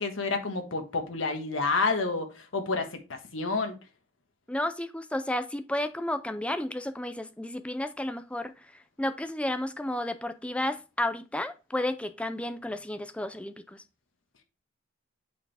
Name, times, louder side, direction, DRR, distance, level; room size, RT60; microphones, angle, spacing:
voice 1, 0.0-3.7, left 3 dB, 75° left, 1.4 m, -29 dB
voice 2, 4.5-8.7 9.0-13.8, left 1 dB, 5° left, 0.5 m, -32 dB
8.5 x 4.5 x 3.4 m
head